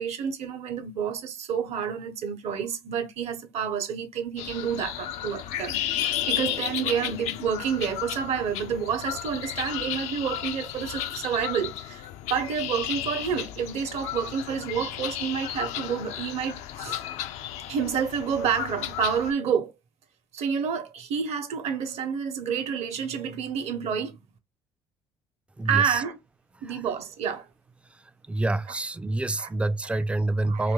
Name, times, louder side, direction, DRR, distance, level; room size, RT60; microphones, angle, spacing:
voice 1, 0.0-17.0 17.7-19.7 20.3-24.1 25.6-26.2 26.6-27.5 28.7-28.8 29.4-29.5 29.9-30.0 30.5-30.7, right 7 dB, 55° right, 0.8 m, -29 dB
sound 1, 4.4-19.3, left 12 dB, 65° left, 0.4 m, -33 dB
voice 2, 25.6-26.0 28.3-30.7, right 2 dB, 10° right, 0.3 m, -27 dB
2.7 x 2.5 x 3.7 m
hypercardioid pair, 55°, 13 cm